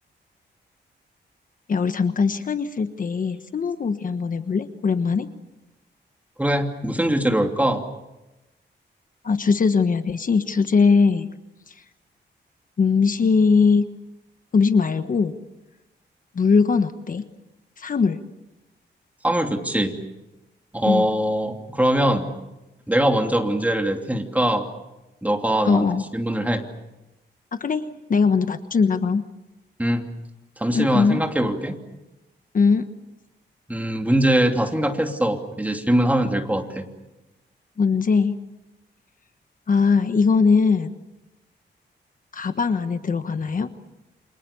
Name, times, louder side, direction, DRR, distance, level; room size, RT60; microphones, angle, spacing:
voice 1, 1.7-5.3 9.2-11.3 11.7-11.8 12.8-13.9 14.5-15.3 16.3-17.2 17.8-18.2 20.8-21.1 25.6-26.0 27.5-27.8 28.1-29.2 30.7-31.2 32.5-32.8 37.8-38.3 39.7-40.9 42.3-43.7, left 5 dB, 45° left, 9 dB, 1.3 m, -20 dB
voice 2, 6.4-7.8 19.2-20.0 20.7-22.3 22.9-24.7 25.2-26.6 29.8-30.0 30.6-31.8 33.7-36.9, right 1 dB, 10° right, 4 dB, 2.9 m, -22 dB
29.5 x 26.5 x 7.1 m, 0.99 s
wide cardioid pair, 125°, 19 cm